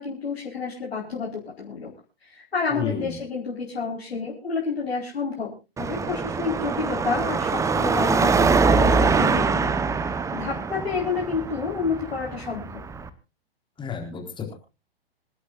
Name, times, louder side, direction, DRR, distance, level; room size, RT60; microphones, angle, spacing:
voice 1, 0.0-1.9 2.2-5.5 5.8-12.8, left 5 dB, 80° left, -3 dB, 4.7 m, -30 dB
voice 2, 2.7-3.1 13.8-14.5, left 7 dB, 15° left, 3 dB, 4.2 m, -31 dB
Car passing by / Traffic noise roadway noise / Engine, 5.8-13.1, right 4 dB, 10° right, 1.0 m, -23 dB
27.0 x 11.0 x 2.5 m, 0.29 s
figure-of-eight pair, 120°, 31 cm